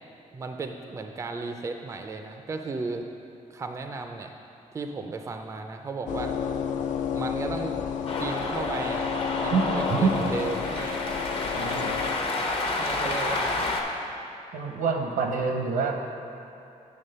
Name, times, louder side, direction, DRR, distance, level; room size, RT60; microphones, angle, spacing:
voice 1, 0.3-3.1 3.5-4.3 4.7-6.3 7.1-7.7 8.2-9.1 9.4-11.0 12.7-13.7, right 3 dB, 20° right, 5 dB, 0.4 m, -34 dB
sound 1, 6.1-12.2, left 7 dB, 70° left, 0.4 m, -31 dB
Cheering, 8.1-13.8, left 2 dB, 45° left, 0.8 m, -29 dB
voice 2, 9.9-10.2 11.6-11.9 14.5-16.0, right 5 dB, 85° right, 3 dB, 0.8 m, -26 dB
8.9 x 3.5 x 6.7 m, 2.7 s
wide cardioid pair, 160°, 13 cm